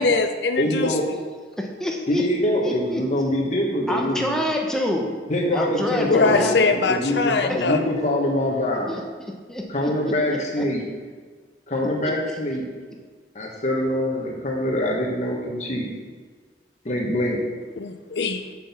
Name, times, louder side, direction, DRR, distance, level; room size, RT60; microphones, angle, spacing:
voice 1, 0.0-0.9 6.1-7.8 17.8-18.4, left 4 dB, 70° left, 7 dB, 0.6 m, -22 dB
voice 2, 0.6-1.0 2.1-4.4 5.3-9.0 9.7-10.8 11.7-12.7 13.3-15.9 16.8-17.4, left 1 dB, 40° left, -2 dB, 1.4 m, -24 dB
voice 3, 1.6-2.2 2.6-3.0 3.9-5.2 5.5-6.5 7.5-7.6 8.9-9.0 9.5-10.6 12.3-12.4, left 1 dB, 5° left, 0 dB, 1.0 m, -27 dB
6.2 x 6.0 x 7.2 m, 1.5 s
head